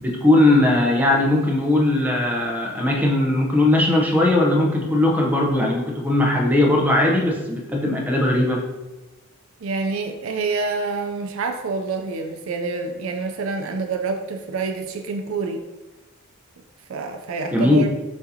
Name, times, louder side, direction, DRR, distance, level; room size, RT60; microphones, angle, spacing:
voice 1, 0.0-8.6 17.5-17.9, left 1 dB, 10° right, -1 dB, 0.6 m, -19 dB
voice 2, 9.6-15.6 16.9-17.9, right 4 dB, 75° right, 5 dB, 0.4 m, -27 dB
6.1 x 2.7 x 2.7 m, 1.1 s
head